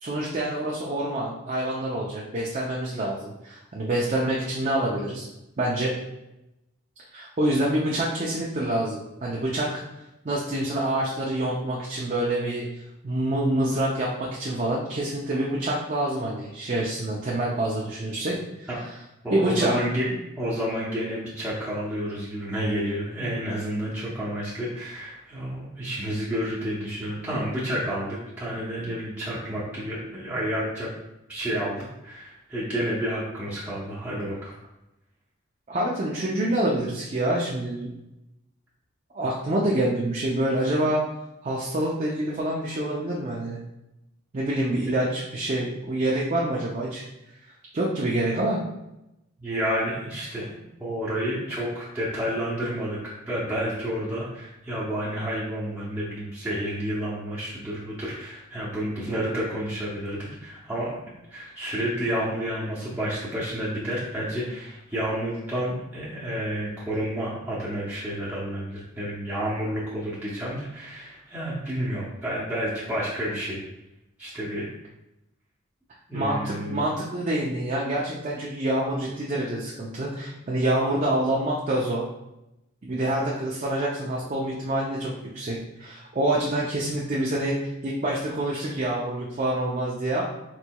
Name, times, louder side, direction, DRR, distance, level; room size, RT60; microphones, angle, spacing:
voice 1, 0.0-5.3 5.6-5.9 7.1-9.7 10.2-18.7 19.3-19.8 35.7-38.0 39.1-41.0 41.4-43.6 44.3-47.0 47.7-48.6 76.1-82.0 82.8-87.5 87.8-90.2, right 1 dB, 35° right, -4 dB, 0.5 m, -26 dB
voice 2, 19.2-30.9 31.3-34.5 49.4-50.5 50.8-60.9 61.3-73.6 74.2-74.6 76.1-76.9, equal, 5° right, -9 dB, 0.8 m, -30 dB
4.5 x 4.0 x 2.3 m, 0.92 s
head